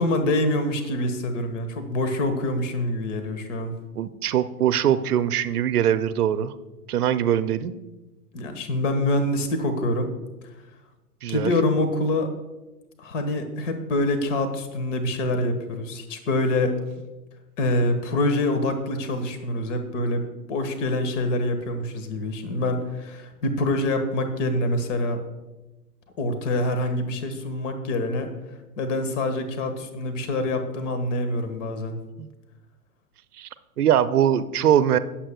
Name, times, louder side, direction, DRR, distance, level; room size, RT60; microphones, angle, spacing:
voice 1, 0.0-3.7 8.3-10.1 11.3-12.3 13.0-16.8 17.6-25.2 26.2-28.3 28.8-32.0, left 1 dB, 50° left, 8 dB, 1.5 m, -25 dB
voice 2, 4.0-6.5 6.9-7.7 11.2-11.5 32.2-32.3 33.4-33.5 33.8-35.0, right 10 dB, 70° right, 13 dB, 0.7 m, -22 dB
20.5 x 7.4 x 2.3 m, 1.1 s
figure-of-eight pair, 105°, 47 cm